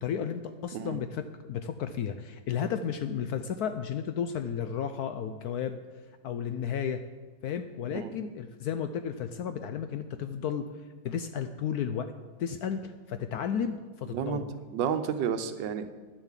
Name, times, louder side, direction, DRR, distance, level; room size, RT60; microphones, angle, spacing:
voice 1, 0.0-5.8 6.2-7.0 7.4-10.7 11.0-12.1 12.4-14.5, left 8 dB, 70° left, 9 dB, 0.9 m, -33 dB
voice 2, 14.1-14.4 14.7-15.9, right 8 dB, 75° right, 10 dB, 1.4 m, -31 dB
9.9 x 7.2 x 7.3 m, 1.4 s
omnidirectional pair, 2.0 m